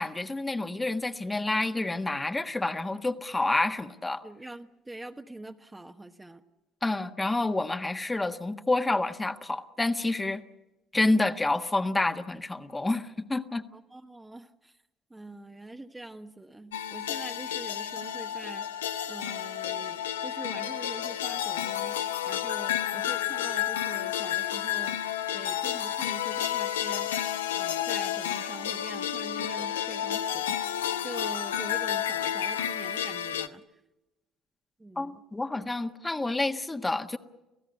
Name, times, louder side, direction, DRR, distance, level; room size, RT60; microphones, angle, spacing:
voice 1, 0.0-4.2 6.8-10.4 10.9-13.6 34.9-37.2, left 2 dB, 15° left, 7 dB, 1.4 m, -28 dB
voice 2, 4.2-6.4 13.7-14.8 15.1-27.1 27.5-33.7 34.8-35.2 35.5-35.6, right 2 dB, 15° right, 6 dB, 1.2 m, -44 dB
sound 1, 16.7-33.5, left 10 dB, 80° left, 0.7 m, -31 dB
29.5 x 16.0 x 8.3 m, 1.0 s
figure-of-eight pair, 55°, 0 cm